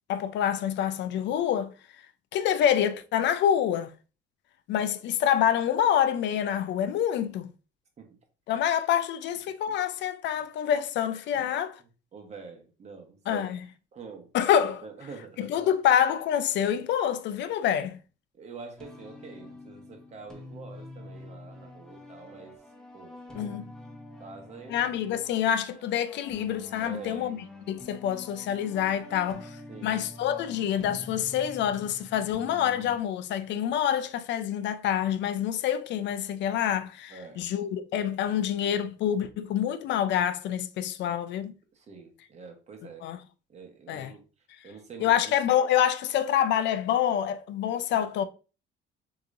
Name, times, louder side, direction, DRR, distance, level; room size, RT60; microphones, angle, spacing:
voice 1, 0.1-1.7 2.3-3.9 4.7-7.5 8.5-11.8 13.3-13.6 14.3-14.8 15.4-18.0 23.3-23.6 24.7-27.4 27.7-29.6 29.8-41.5 43.0-43.2 43.9-44.1 45.0-48.2, left 10 dB, 60° left, 0.4 m, -27 dB
voice 2, 12.1-13.6 13.9-14.3 14.8-15.7 17.6-17.7 18.3-22.6 22.9-23.5 24.2-24.8 25.4-25.5 26.8-27.4 29.7-30.0 37.1-37.4 41.7-43.0 43.5-44.2 44.6-45.3, right 4 dB, 35° right, 1.0 m, -46 dB
sound 1, 18.8-33.0, left 2 dB, 5° left, 0.7 m, -46 dB
6.3 x 3.0 x 2.5 m
cardioid pair, 165°, 20 cm